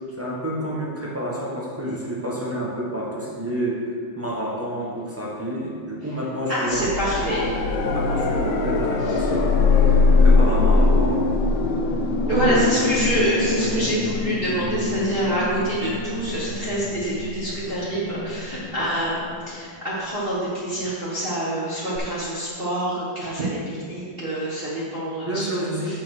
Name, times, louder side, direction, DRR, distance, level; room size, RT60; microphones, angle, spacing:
voice 1, 0.2-6.9 7.2-11.2 12.1-13.8 14.6-14.9 25.3-26.0, right 1 dB, 10° right, -5 dB, 1.0 m, -29 dB
voice 2, 6.5-7.6 9.1-9.2 12.3-26.0, right 1 dB, 30° right, -9 dB, 1.4 m, -26 dB
sound 1, 6.7-19.6 22.0-22.1, left 3 dB, 80° left, 1.6 m, -22 dB
8.3 x 4.4 x 6.2 m, 2.1 s
omnidirectional pair, 2.3 m